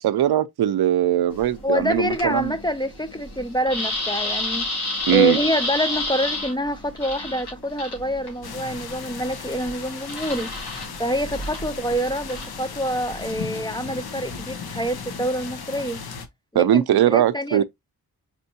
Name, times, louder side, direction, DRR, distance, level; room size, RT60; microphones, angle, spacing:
voice 1, 0.0-2.5 5.1-5.4 16.5-17.6, right 11 dB, 80° right, 0.5 m, -20 dB
sound 1, 1.3-13.3, left 2 dB, 90° left, 2.4 m, -31 dB
voice 2, 1.6-4.6 5.1-10.5 11.0-16.0 16.5-17.6, equal, 10° left, 0.4 m, -26 dB
sound 2, 8.4-16.3, left 5 dB, 75° left, 0.9 m, -36 dB
4.4 x 4.3 x 2.7 m
wide cardioid pair, 100°, 38 cm